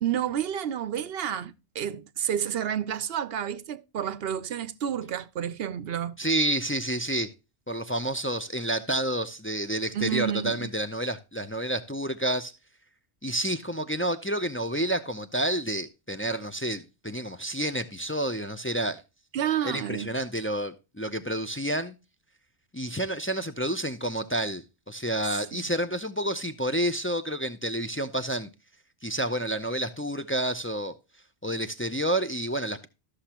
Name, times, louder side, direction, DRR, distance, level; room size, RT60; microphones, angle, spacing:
voice 1, 0.0-6.2 9.9-10.7 19.3-20.2 25.3-25.7, right 9 dB, 65° right, 0.8 m, -30 dB
voice 2, 6.2-7.3 7.7-12.5 13.2-19.0 19.6-21.9 22.7-28.5 29.0-30.9 31.4-32.9, right 1 dB, 20° left, 0.3 m, -29 dB
13.0 x 6.4 x 2.9 m
omnidirectional pair, 1.2 m